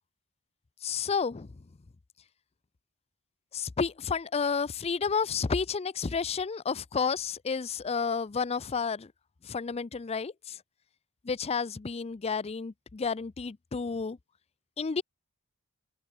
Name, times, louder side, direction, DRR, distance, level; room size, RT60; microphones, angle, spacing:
voice 1, 0.8-1.5 3.5-9.1 9.4-10.6 11.2-14.2 14.8-15.0, left 5 dB, 30° left, 0.4 m, -31 dB
open air
head